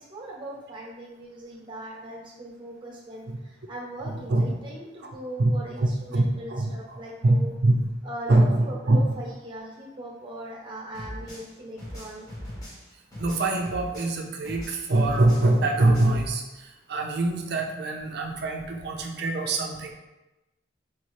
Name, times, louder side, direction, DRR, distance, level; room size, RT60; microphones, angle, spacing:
voice 1, 0.0-7.5 8.0-12.3, right 1 dB, 25° right, -3 dB, 0.9 m, -40 dB
voice 2, 4.0-4.5 5.4-5.5 5.8-6.2 6.5-6.7 7.2-7.9 8.3-9.0 13.2-19.9, right 2 dB, 55° right, 2 dB, 0.5 m, -24 dB
sound 1, 10.9-14.2 14.4-16.3, equal, 20° left, 0.9 m, -39 dB
4.4 x 2.7 x 3.1 m, 1.0 s
head